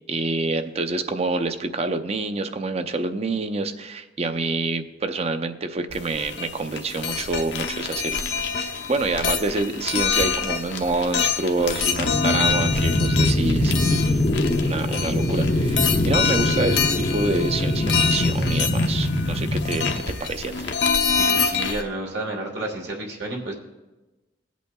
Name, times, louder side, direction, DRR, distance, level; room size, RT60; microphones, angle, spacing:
voice 1, 0.1-8.2 8.6-14.2 14.6-20.7, right 3 dB, 35° right, 9 dB, 0.6 m, -27 dB
sound 1, 5.9-21.8, left 6 dB, 70° left, 0.8 m, -26 dB
sound 2, 12.0-20.0, left 1 dB, 40° left, 0.7 m, -23 dB
voice 2, 21.2-23.5, right 1 dB, 70° right, -1 dB, 1.4 m, -31 dB
19.0 x 8.2 x 2.3 m, 1.1 s
head